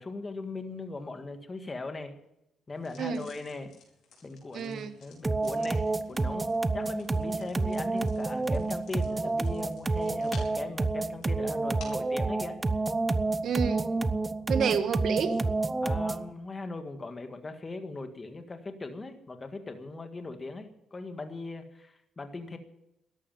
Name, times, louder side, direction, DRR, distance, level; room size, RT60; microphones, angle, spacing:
voice 1, 0.0-2.2 2.7-3.7 4.2-12.6 15.8-22.6, left 3 dB, 30° left, 7 dB, 1.8 m, -39 dB
sound 1, 2.8-12.1, left 5 dB, 75° left, 5.1 m, -55 dB
voice 2, 4.5-5.0 13.4-13.9 14.5-15.4, right 7 dB, 65° right, 10 dB, 1.5 m, -29 dB
sound 2, 5.2-16.3, right 3 dB, 20° right, 0.7 m, -29 dB
13.5 x 11.0 x 9.1 m, 0.84 s
cardioid pair, 90°, 0 cm